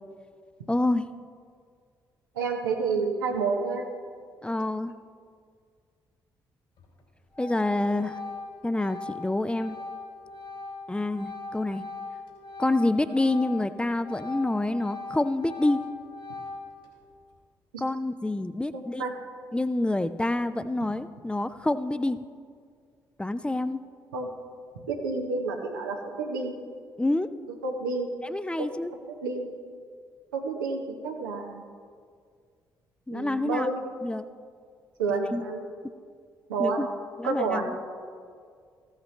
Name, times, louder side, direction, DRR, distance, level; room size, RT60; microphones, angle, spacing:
voice 1, 0.7-1.1 4.4-4.9 7.4-8.2 8.6-9.8 10.9-11.8 12.6-15.8 17.8-19.0 19.5-22.2 23.2-23.8 27.0-27.3 28.2-28.9 33.1-33.7 34.0-34.3 35.3-35.4 36.6-36.9 37.2-37.8, left 2 dB, 10° left, 13 dB, 0.5 m, -27 dB
voice 2, 2.4-3.9 17.7-17.8 18.7-19.1 24.1-24.3 24.9-26.5 27.6-28.1 28.6-28.7 29.2-29.5 30.3-31.6 33.1-33.8 35.0-35.6 36.5-36.8 37.2-37.7, right 4 dB, 85° right, 2 dB, 0.8 m, -29 dB
Organ, 6.8-7.0 7.3-13.7 14.0-16.9, left 3 dB, 65° left, 2.9 m, -40 dB
15.0 x 8.2 x 3.2 m, 2.1 s
hypercardioid pair, 40°, 11 cm